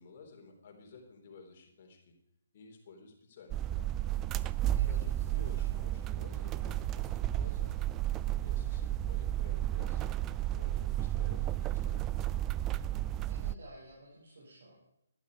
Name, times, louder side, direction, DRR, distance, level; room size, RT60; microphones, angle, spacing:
voice 1, 0.0-2.2 2.5-4.0 4.8-7.8 8.3-10.1 10.6-12.1, left 4 dB, 40° left, 1 dB, 3.5 m, -54 dB
sound 1, 3.5-13.5, right 13 dB, 20° right, 0.4 m, -33 dB
voice 2, 4.7-5.8 13.3-14.7, right 1 dB, 65° right, -5 dB, 4.6 m, -53 dB
12.0 x 11.5 x 4.8 m, 0.82 s
figure-of-eight pair, 140°, 0 cm